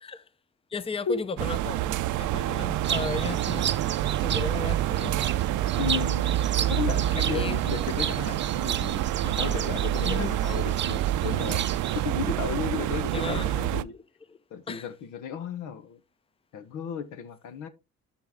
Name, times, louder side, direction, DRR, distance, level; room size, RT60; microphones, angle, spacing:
voice 1, 0.7-3.7 4.2-5.2 7.3-7.6 10.0-10.3 13.1-13.6 14.3-14.4 14.7-14.9, left 4 dB, 20° left, 0.7 m, -34 dB
sound 1, 1.4-13.8, right 13 dB, 80° right, 0.5 m, -27 dB
sound 2, 2.1-10.9, left 3 dB, 55° left, 2.2 m, -50 dB
sound 3, 2.8-12.0, right 8 dB, 40° right, 0.6 m, -34 dB
voice 2, 5.8-6.3 6.7-11.6 11.9-13.9 14.5-16.0 16.5-17.7, left 7 dB, 90° left, 1.1 m, -34 dB
11.5 x 4.1 x 3.7 m
cardioid pair, 90°, 30 cm